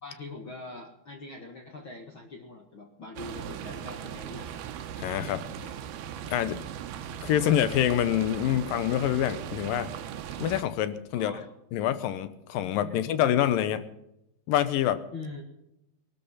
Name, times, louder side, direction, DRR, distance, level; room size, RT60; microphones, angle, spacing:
voice 1, 0.0-4.7 11.1-11.5 15.1-15.4, left 3 dB, 55° left, 3 dB, 1.4 m, -43 dB
sound 1, 3.2-10.6, right 9 dB, 75° right, 2.8 m, -38 dB
voice 2, 5.0-5.7 6.3-6.6 7.2-9.9 10.4-11.3 11.7-13.8 14.5-15.0, left 11 dB, 75° left, 12 dB, 2.3 m, -26 dB
20.0 x 12.5 x 5.7 m, 0.82 s
omnidirectional pair, 4.8 m